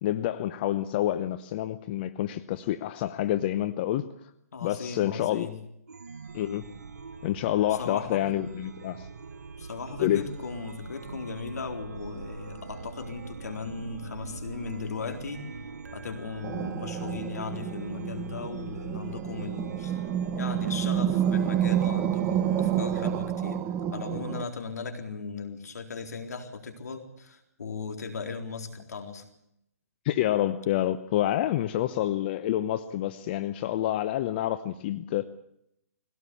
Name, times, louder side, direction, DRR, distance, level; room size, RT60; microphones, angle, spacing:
voice 1, 0.0-4.3 4.6-5.5 6.3-6.6 7.2-9.1 10.0-10.2 30.0-35.3, left 13 dB, 35° left, 11 dB, 0.9 m, -28 dB
voice 2, 4.5-5.5 7.7-8.2 9.6-15.5 15.9-20.1 20.3-29.2, left 5 dB, 70° left, 5 dB, 4.0 m, -37 dB
Chime, 5.9-23.3, right 4 dB, 75° right, 1.6 m, -43 dB
sound 1, 16.4-24.4, right 10 dB, 20° right, 0.8 m, -29 dB
21.0 x 17.5 x 8.5 m, 0.77 s
hypercardioid pair, 140°, 9 cm